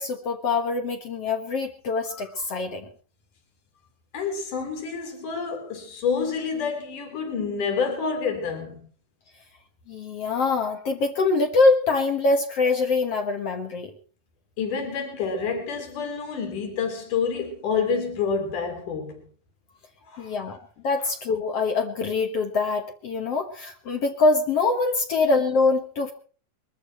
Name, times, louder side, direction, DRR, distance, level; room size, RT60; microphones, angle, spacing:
voice 1, 0.0-2.9 9.9-13.9 20.2-20.6 20.8-26.1, left 3 dB, 55° left, 2.4 m, -24 dB
voice 2, 4.1-8.9 14.6-19.2 20.1-20.3, left 5 dB, 75° left, 4.9 m, -28 dB
22.5 x 13.5 x 4.5 m
omnidirectional pair, 3.7 m